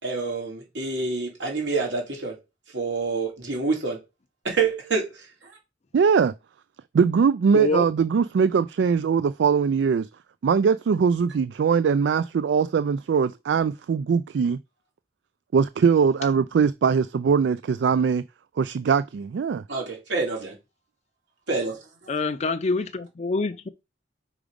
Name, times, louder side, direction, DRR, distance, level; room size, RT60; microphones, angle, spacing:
voice 1, 0.0-2.4 2.7-4.0 4.4-5.2 19.7-20.5 21.5-21.8, right 4 dB, 90° right, 2.9 m, -27 dB
voice 2, 5.9-6.3 6.9-10.1 10.4-14.6 15.5-18.2 18.6-19.6, right 6 dB, 70° right, 0.3 m, -21 dB
voice 3, 7.5-7.9 22.1-23.7, left 3 dB, 40° left, 0.5 m, -26 dB
4.9 x 4.9 x 5.1 m
head